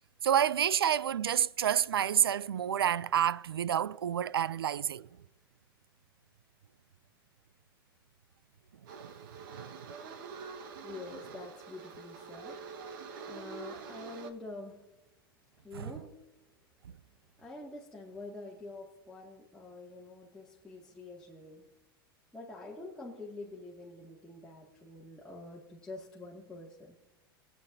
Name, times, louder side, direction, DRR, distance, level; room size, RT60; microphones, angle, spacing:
voice 1, 0.2-5.1 8.9-9.1 9.5-9.8 15.8-15.9, right 9 dB, 85° right, 0.4 m, -29 dB
sound 1, 8.9-14.3, right 5 dB, 60° right, 1.4 m, -46 dB
voice 2, 10.8-14.8 15.6-16.2 17.4-21.7 22.3-27.0, left 2 dB, 5° left, 2.1 m, -47 dB
25.5 x 9.0 x 2.7 m
hypercardioid pair, 95°, 12 cm